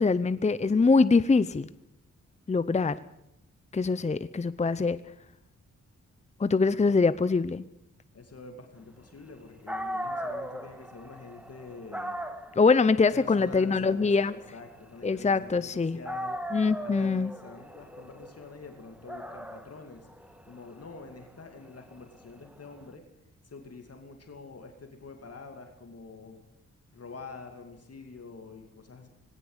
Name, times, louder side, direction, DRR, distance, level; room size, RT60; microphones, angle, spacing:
voice 1, 0.0-1.7 2.5-3.0 3.7-5.0 6.4-7.6 12.6-14.3 15.0-16.0 16.5-17.3, left 4 dB, 20° left, 15 dB, 0.7 m, -23 dB
voice 2, 8.1-12.2 13.1-16.4 16.8-23.0 23.4-26.4 26.9-29.1, left 4 dB, 50° left, 4 dB, 2.5 m, -46 dB
Dog, 9.4-9.5 9.7-15.7 16.0-22.8, equal, 5° right, 1.8 m, -39 dB
19.0 x 17.0 x 8.1 m, 0.82 s
cardioid pair, 85°, 30 cm